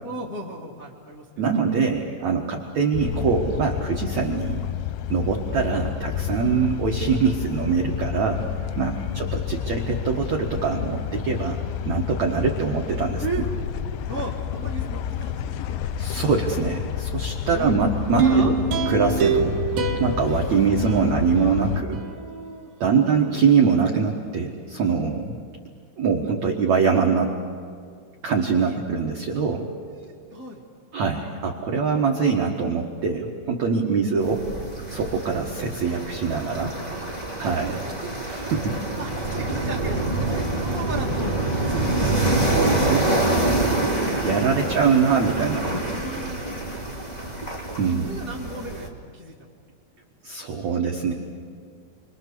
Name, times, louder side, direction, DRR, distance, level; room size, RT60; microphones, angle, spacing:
voice 1, 0.0-1.3 6.6-6.7 9.1-9.3 12.6-12.7 13.2-13.5 14.1-15.9 17.5-17.8 18.2-18.5 21.7-23.1 28.6-28.7 29.9-30.6 33.9-34.0 37.5-37.9 38.9-41.3 41.6-42.5 43.8-45.2 45.8-46.5 47.0-47.2 48.0-49.6, right 3 dB, 40° left, -5 dB, 1.1 m, -36 dB
voice 2, 1.4-4.6 5.1-8.4 8.7-13.2 16.0-18.5 18.9-19.6 20.0-22.0 22.8-25.3 26.0-27.3 28.2-29.7 30.9-34.5 34.9-36.8 37.4-37.7 38.3-38.8 42.1-43.2 44.2-45.7 47.8-48.1 50.2-51.1, right 5 dB, 70° right, 0 dB, 1.7 m, -23 dB
sound 1, 2.9-21.8, left 9 dB, 80° left, 2.9 m, -30 dB
sound 2, 18.2-21.5 21.9-22.0, right 4 dB, 55° right, 3.4 m, -24 dB
sound 3, 34.2-48.9, right 2 dB, 25° left, 0.9 m, -26 dB
29.5 x 24.0 x 6.9 m, 2.1 s
omnidirectional pair, 5.6 m